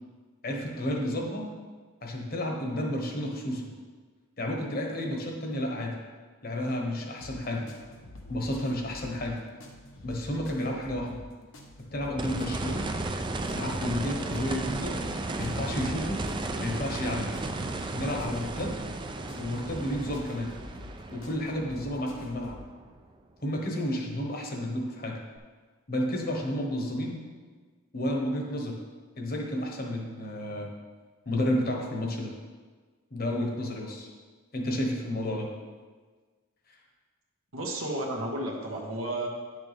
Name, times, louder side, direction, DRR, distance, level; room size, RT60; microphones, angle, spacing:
voice 1, 0.4-1.5 2.0-3.6 4.4-6.0 6.4-7.7 8.3-9.4 10.0-11.2 11.9-12.9 13.5-15.0 15.4-16.2 16.6-17.3 17.9-18.8 19.4-20.5 21.1-22.6 23.4-25.2 25.9-27.2 27.9-28.8 29.2-30.7 31.3-32.3 33.1-34.1 34.5-35.5, left 1 dB, 45° left, 1 dB, 1.3 m, -31 dB
sound 1, 7.2-22.7, left 2 dB, 75° left, 1.2 m, -47 dB
sound 2, 12.2-23.1 25.4-25.5, right 2 dB, 25° right, 0.4 m, -34 dB
voice 2, 37.5-39.3, right 1 dB, 90° right, -1 dB, 1.5 m, -32 dB
9.6 x 6.7 x 3.4 m, 1.4 s
head